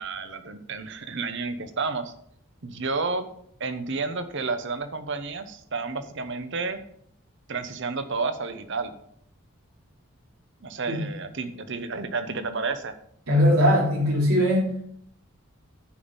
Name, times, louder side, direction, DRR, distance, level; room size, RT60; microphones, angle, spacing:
voice 1, 0.0-2.1 2.6-3.3 3.6-6.8 7.5-8.9 10.6-12.9, right 4 dB, 55° right, 10 dB, 0.9 m, -31 dB
voice 2, 13.3-14.9, equal, 75° right, -2 dB, 3.2 m, -21 dB
9.2 x 5.3 x 7.2 m, 0.68 s
head